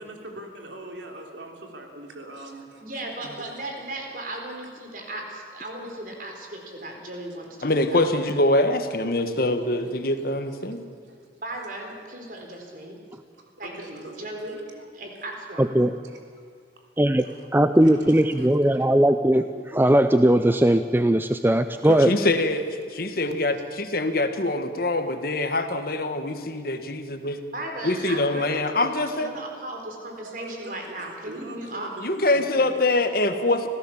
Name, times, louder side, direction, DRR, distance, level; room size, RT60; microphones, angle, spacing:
voice 1, 0.0-2.8 3.2-3.5 9.1-9.2 9.6-9.7 10.1-10.6 11.1-11.2 13.4-14.8 16.0-16.2 16.7-16.9 17.2-17.5 17.8-18.8 21.9-22.8 23.1-23.2 30.2-30.8 31.2-32.6, right 1 dB, 85° right, 2 dB, 3.5 m, -43 dB
voice 2, 2.8-8.4 11.4-13.0 13.6-14.6 14.9-15.7 27.5-31.9, right 1 dB, 50° right, 2 dB, 4.4 m, -36 dB
voice 3, 7.6-10.8 21.9-22.6 22.9-27.4 27.8-29.3 32.0-33.7, left 2 dB, 55° left, 7 dB, 1.5 m, -24 dB
voice 4, 15.6-15.9 17.0-17.3 17.5-22.1, right 1 dB, 10° right, 9 dB, 0.5 m, -19 dB
26.5 x 16.5 x 7.3 m, 2.1 s
head